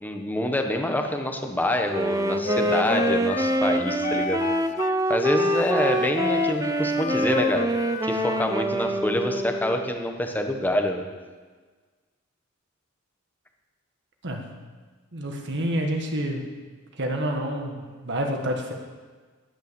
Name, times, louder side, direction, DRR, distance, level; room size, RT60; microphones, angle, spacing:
voice 1, 0.0-4.4 5.1-7.7 8.0-11.1, left 1 dB, 10° left, 4 dB, 1.1 m, -26 dB
Wind instrument woodwind instrument, 1.9-9.9, right 1 dB, 15° right, 0.6 m, -26 dB
Wind instrument woodwind instrument 2, 2.2-5.0 5.4-8.5, left 6 dB, 35° left, 0.4 m, -31 dB
voice 2, 14.2-14.5 15.1-16.5 17.0-18.7, equal, 55° right, 2 dB, 1.5 m, -28 dB
11.0 x 10.0 x 6.9 m, 1.4 s
head